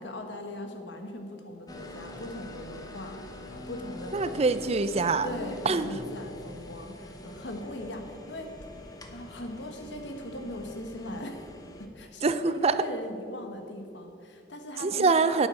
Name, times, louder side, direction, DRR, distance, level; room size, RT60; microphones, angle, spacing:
voice 1, 0.0-3.2 3.5-4.5 5.2-8.5 9.1-11.4 11.8-15.2, left 1 dB, 70° left, 4 dB, 1.4 m, -39 dB
sound 1, 1.7-11.9, left 2 dB, 20° left, 0.9 m, -44 dB
voice 2, 4.1-5.3 5.7-5.9 12.2-12.7 14.8-15.5, right 4 dB, 35° right, 12 dB, 0.5 m, -24 dB
8.7 x 8.4 x 6.4 m, 2.4 s
head